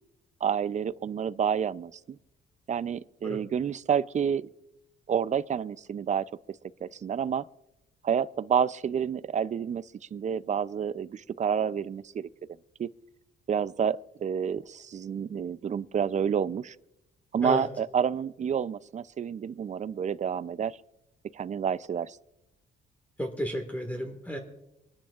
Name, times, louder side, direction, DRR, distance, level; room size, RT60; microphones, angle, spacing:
voice 1, 0.4-2.2 2.7-4.5 5.1-6.3 6.8-7.5 8.0-9.9 10.1-12.3 12.8-12.9 13.5-16.8 17.3-20.8 21.3-22.2, right 7 dB, 35° right, 0.5 m, -29 dB
voice 2, 23.2-24.4, equal, 10° left, 1.7 m, -32 dB
27.0 x 10.5 x 2.4 m
cardioid pair, 90°, 20 cm